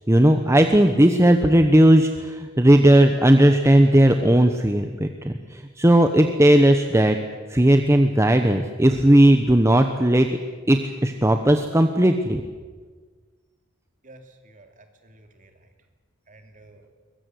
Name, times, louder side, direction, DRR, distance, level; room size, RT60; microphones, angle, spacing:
voice 1, 0.1-7.2 7.5-10.3 10.7-12.4, right 1 dB, 15° right, 6 dB, 1.0 m, -17 dB
voice 2, 14.0-15.7 16.3-16.8, right 2 dB, 40° right, 5 dB, 2.8 m, -51 dB
22.5 x 21.0 x 7.9 m, 1.5 s
head